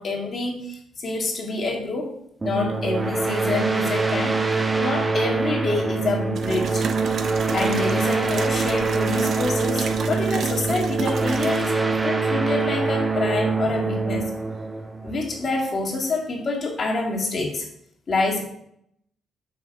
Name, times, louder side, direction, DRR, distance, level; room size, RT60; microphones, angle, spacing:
voice 1, 0.0-2.1 2.4-4.4 4.8-6.9 7.5-14.3 15.0-17.7 18.1-18.4, left 3 dB, 40° left, -1 dB, 1.9 m, -27 dB
sound 1, 2.4-15.7, right 4 dB, 25° right, 0.8 m, -24 dB
sound 2, 6.4-11.7, right 6 dB, 60° right, 0.7 m, -32 dB
5.9 x 5.5 x 4.6 m, 0.72 s
cardioid pair, 90°, 0 cm